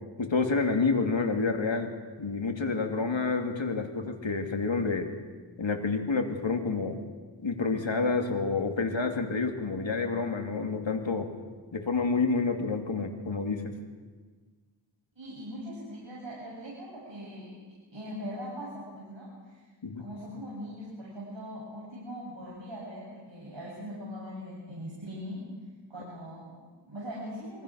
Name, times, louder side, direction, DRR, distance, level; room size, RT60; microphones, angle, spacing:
voice 1, 0.2-5.1 5.6-7.0 7.4-11.3 11.7-13.7 19.8-20.0, left 4 dB, 80° left, 4 dB, 2.7 m, -29 dB
voice 2, 15.2-17.5 17.9-19.6 20.0-25.4 25.9-27.6, equal, 75° right, -7 dB, 7.8 m, -41 dB
26.0 x 24.0 x 6.4 m, 1.4 s
wide cardioid pair, 50°, 45 cm